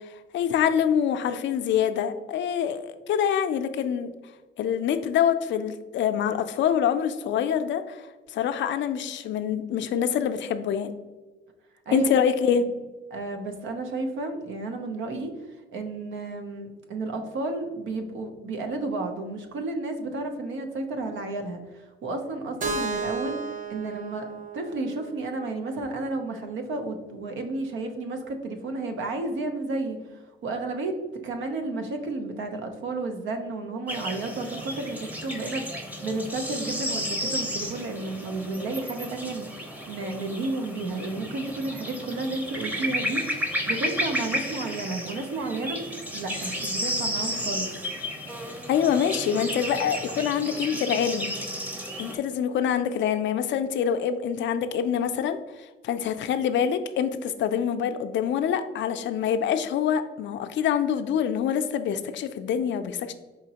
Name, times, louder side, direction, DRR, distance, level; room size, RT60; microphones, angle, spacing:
voice 1, 0.3-4.1 4.6-8.1 8.3-10.9 11.9-12.7 48.7-51.4 52.0-63.1, left 8 dB, 65° left, 9 dB, 0.4 m, -25 dB
voice 2, 13.1-15.3 15.7-24.3 24.5-30.9 31.2-45.8 46.1-47.7, right 2 dB, 75° right, 5 dB, 0.7 m, -32 dB
Keyboard (musical), 22.6-26.5, right 4 dB, 40° right, 0.6 m, -34 dB
sound 1, 33.9-52.2, equal, 10° right, 0.7 m, -32 dB
4.9 x 3.0 x 2.8 m, 1.2 s
cardioid pair, 90°, 20 cm